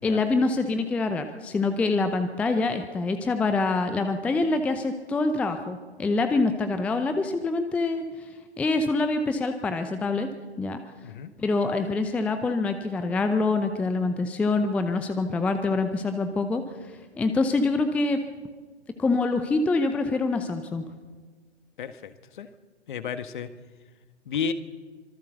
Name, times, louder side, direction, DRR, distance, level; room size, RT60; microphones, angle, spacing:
voice 1, 0.0-8.3 8.6-10.3 10.6-10.8 11.4-16.6 17.2-18.2 19.0-20.8, left 3 dB, 5° left, 8 dB, 0.7 m, -25 dB
voice 2, 21.8-22.5 22.9-23.5 24.3-24.5, left 7 dB, 45° left, 10 dB, 1.8 m, -32 dB
25.5 x 23.5 x 6.8 m, 1.4 s
figure-of-eight pair, 125°, 34 cm